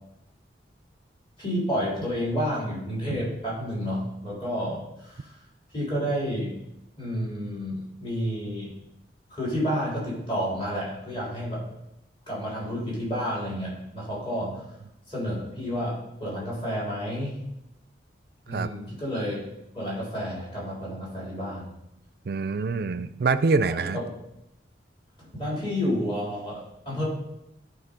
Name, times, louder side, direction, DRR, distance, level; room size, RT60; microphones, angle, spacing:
voice 1, 1.4-5.3 5.7-6.5 7.0-8.7 9.3-11.6 12.3-14.6 15.1-17.4 18.5-19.4 19.7-21.7 23.9-24.1 25.3-27.1, equal, 30° left, -6 dB, 3.3 m, -30 dB
voice 2, 22.3-24.0, right 4 dB, 55° right, 13 dB, 0.4 m, -25 dB
11.5 x 3.9 x 5.2 m, 0.86 s
head